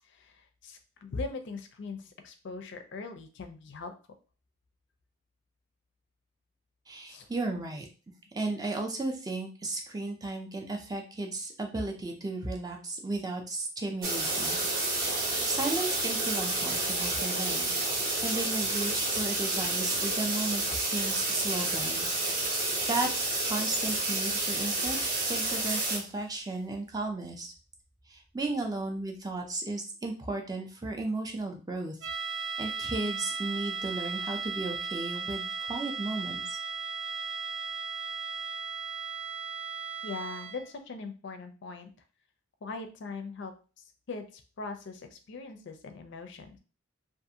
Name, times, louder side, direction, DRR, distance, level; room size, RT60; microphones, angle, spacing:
voice 1, 0.0-3.9 7.1-7.3 40.0-41.9 42.6-46.6, left 3 dB, 60° left, 7 dB, 0.4 m, -41 dB
voice 2, 6.9-7.9 8.3-14.6 15.4-17.8 18.2-22.1 22.9-23.1 23.4-25.0 25.3-27.5 28.1-32.0 32.6-36.6, right 2 dB, 20° right, 3 dB, 0.4 m, -34 dB
sound 1, 14.0-26.0, right 2 dB, 45° right, 0.7 m, -30 dB
sound 2, 32.0-40.7, right 5 dB, 75° right, 0.6 m, -36 dB
2.5 x 2.4 x 2.7 m, 0.36 s
head